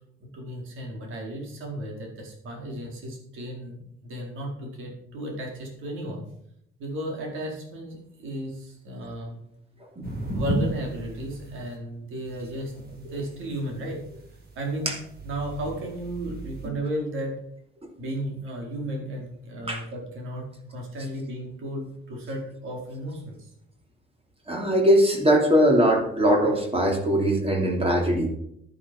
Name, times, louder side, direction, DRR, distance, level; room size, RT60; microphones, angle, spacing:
voice 1, 0.3-6.2 6.8-9.4 10.3-14.0 14.5-14.9 15.2-17.4 18.0-23.4, right 1 dB, 80° right, 0 dB, 4.7 m, -34 dB
sound 1, 10.0-11.7 12.3-16.7, right 1 dB, 50° right, 4.6 m, -35 dB
voice 2, 24.5-28.3, equal, 30° right, 1 dB, 3.1 m, -21 dB
11.0 x 10.0 x 5.5 m, 0.73 s
cardioid pair, 90°, 20 cm